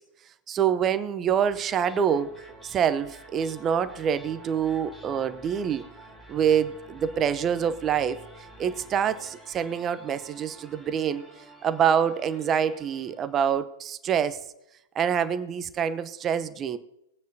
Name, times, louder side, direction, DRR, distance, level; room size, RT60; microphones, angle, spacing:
voice 1, 0.5-5.8 6.3-11.2 11.6-14.5 14.9-16.8, right 8 dB, 25° right, 12 dB, 0.7 m, -26 dB
sound 1, 1.3-13.6, right 2 dB, 5° left, 3.5 m, -49 dB
20.5 x 9.3 x 2.8 m, 0.88 s
hypercardioid pair, 110°, 0 cm